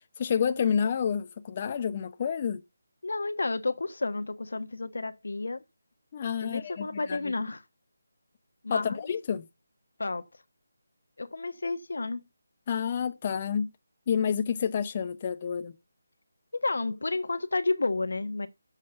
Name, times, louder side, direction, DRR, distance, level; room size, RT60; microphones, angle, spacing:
voice 1, 0.2-2.6 6.1-7.3 8.7-9.5 12.7-13.7 14.1-15.7, left 7 dB, 35° left, 0.8 m, -29 dB
voice 2, 3.0-5.6 6.4-7.6 8.6-9.1 10.0-10.3 11.2-12.2 16.5-18.5, left 3 dB, 75° left, 1.2 m, -31 dB
7.4 x 7.3 x 8.0 m
figure-of-eight pair, 160°, 0 cm